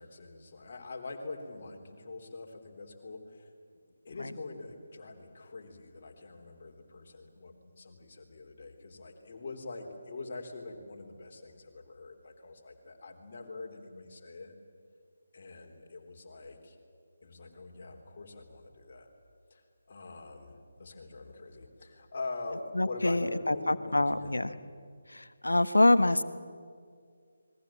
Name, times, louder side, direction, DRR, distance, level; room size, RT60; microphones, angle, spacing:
voice 1, 0.0-3.4 4.0-14.6 15.3-16.8 17.2-19.1 19.5-19.6 19.9-24.4, left 3 dB, 40° left, 2 dB, 3.7 m, -44 dB
voice 2, 22.7-24.5 25.1-26.2, left 1 dB, 70° left, 12 dB, 1.3 m, -26 dB
28.5 x 22.0 x 7.6 m, 2.1 s
figure-of-eight pair, 150°, 0 cm